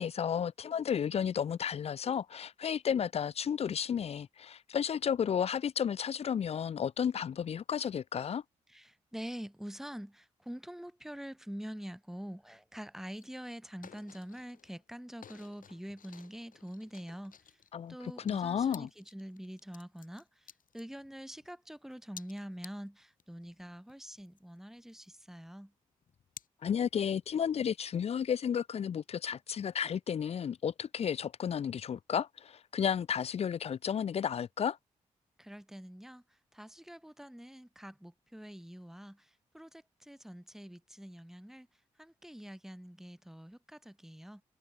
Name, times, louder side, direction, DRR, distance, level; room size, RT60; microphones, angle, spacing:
voice 1, 0.0-8.4 17.7-17.9 18.2-18.9 26.6-34.8, left 8 dB, 45° left, 0.4 m, -32 dB
voice 2, 8.7-17.4 17.9-25.7 35.4-41.7 42.0-44.4, equal, 5° right, 1.1 m, -46 dB
sound 1, 13.1-13.4 13.7-14.8 15.2-21.5 21.9-23.2 23.6-23.7 23.9-25.5 26.0-26.5, left 8 dB, 70° left, 2.6 m, -54 dB
supercardioid pair, 45°, 15 cm